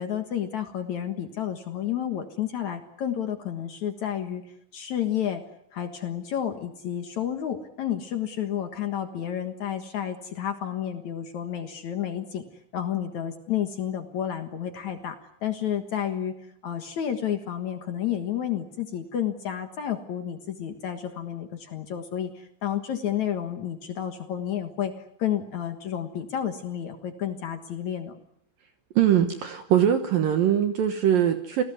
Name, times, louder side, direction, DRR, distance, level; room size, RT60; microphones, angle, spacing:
voice 1, 0.0-4.4 4.7-5.4 5.7-12.4 12.7-16.3 16.6-24.9 25.2-28.2, left 10 dB, 65° left, 7 dB, 1.9 m, -31 dB
voice 2, 29.0-31.6, right 10 dB, 70° right, 7 dB, 2.2 m, -22 dB
29.0 x 19.0 x 9.3 m, 0.75 s
omnidirectional pair, 5.5 m